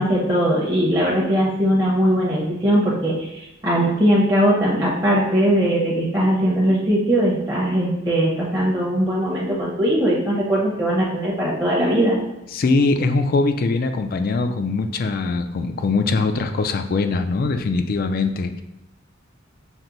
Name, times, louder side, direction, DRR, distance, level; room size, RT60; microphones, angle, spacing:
voice 1, 0.0-12.2, equal, 15° right, -6 dB, 0.8 m, -20 dB
voice 2, 12.5-18.6, left 3 dB, 45° left, 7 dB, 0.3 m, -22 dB
5.9 x 2.1 x 3.9 m, 0.92 s
head